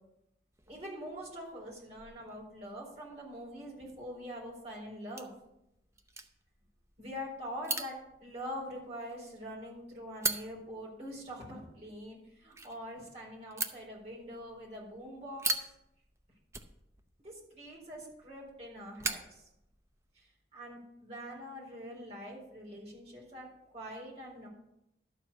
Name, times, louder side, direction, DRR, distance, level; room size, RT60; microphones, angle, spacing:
sound 1, 0.5-20.2, right 3 dB, 15° right, 0.6 m, -43 dB
voice 1, 0.7-5.3 7.0-8.0 8.2-15.7 17.2-19.4 20.1-23.5 23.7-24.5, equal, 35° right, -4 dB, 4.1 m, -44 dB
12.5 x 4.7 x 6.8 m, 0.85 s
head